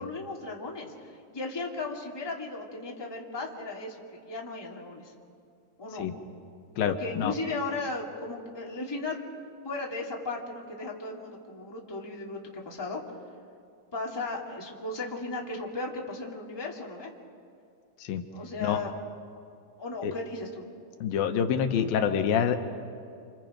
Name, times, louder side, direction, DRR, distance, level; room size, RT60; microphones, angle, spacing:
voice 1, 0.0-4.0 4.2-5.1 5.8-6.1 6.9-9.2 9.6-13.0 13.9-17.1 18.3-18.9 19.8-20.6, left 3 dB, 10° left, -2 dB, 2.0 m, -36 dB
voice 2, 6.8-7.3 18.0-18.2 18.6-18.8 20.0-20.1 21.0-22.6, left 8 dB, 85° left, 6 dB, 3.0 m, -26 dB
29.0 x 28.0 x 5.2 m, 2.4 s
omnidirectional pair, 4.1 m